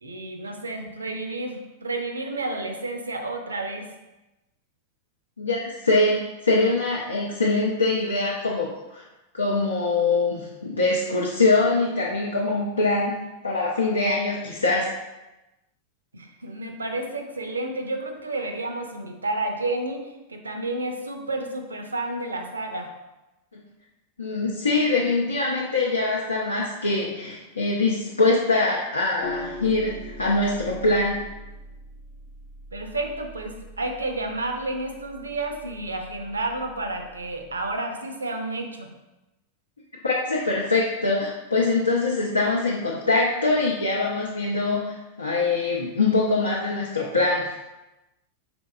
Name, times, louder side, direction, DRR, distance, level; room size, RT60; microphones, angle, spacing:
voice 1, 0.0-3.9 16.1-22.9 32.7-38.9, right 2 dB, 75° right, 5 dB, 0.5 m, -31 dB
voice 2, 5.4-9.0 9.3-14.9 23.5-23.6 24.2-31.2 40.0-47.5, left 3 dB, 80° left, -4 dB, 0.6 m, -23 dB
sound 1, 29.2-37.8, left 1 dB, 50° left, 0.8 m, -42 dB
5.2 x 3.9 x 2.3 m, 1.0 s
figure-of-eight pair, 90°, 0 cm